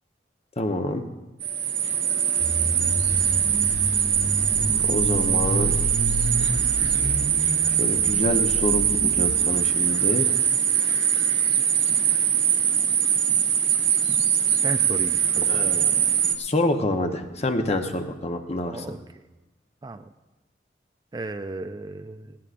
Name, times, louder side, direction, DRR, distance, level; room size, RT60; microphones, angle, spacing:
voice 1, 0.6-1.0 4.7-5.7 7.8-10.3 15.5-16.1 16.4-18.8, left 1 dB, 35° left, 6 dB, 0.9 m, -27 dB
sound 1, 1.4-16.4, right 8 dB, 75° right, 1.2 m, -22 dB
sound 2, 2.4-9.6, equal, 55° left, 2.7 m, -30 dB
voice 2, 14.6-15.6 18.7-19.2 19.8-20.1 21.1-22.4, right 2 dB, 25° right, 9 dB, 0.4 m, -35 dB
19.0 x 16.0 x 2.5 m, 1.1 s
head